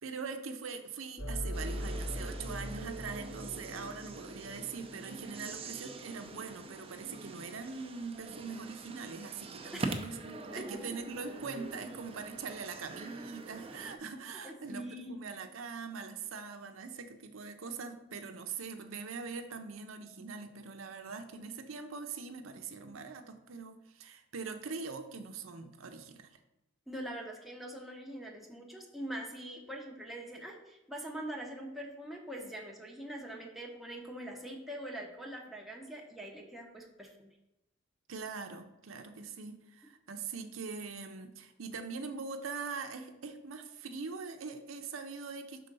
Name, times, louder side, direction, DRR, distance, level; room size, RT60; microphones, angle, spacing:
voice 1, 0.0-26.3 38.1-45.7, right 5 dB, 85° right, 6 dB, 0.6 m, -42 dB
sound 1, 1.2-5.2, equal, 75° left, 1.9 m, -40 dB
sound 2, 1.5-14.0, right 3 dB, 30° right, 0.6 m, -44 dB
voice 2, 14.4-15.2 26.9-37.3, right 1 dB, ahead, -1 dB, 0.8 m, -43 dB
5.6 x 3.8 x 5.3 m, 0.95 s
head